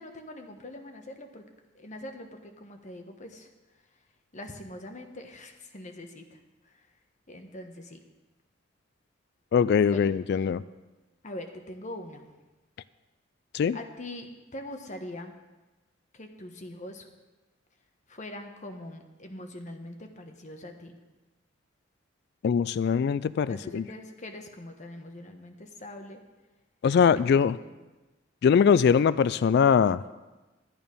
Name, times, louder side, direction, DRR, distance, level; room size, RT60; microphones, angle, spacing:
voice 1, 0.0-1.4 1.7-3.5 4.3-6.4 6.6-6.9 7.3-8.0 9.8-10.1 11.2-12.2 13.7-15.3 16.1-17.1 18.1-21.0 23.5-26.2 27.1-27.4 27.6-27.8, left 1 dB, 40° left, 5 dB, 1.2 m, -42 dB
voice 2, 9.5-10.6 13.5-13.8 22.4-23.9 26.8-27.6 28.4-30.0, left 6 dB, 60° left, 17 dB, 0.3 m, -22 dB
13.0 x 9.1 x 5.3 m, 1.1 s
head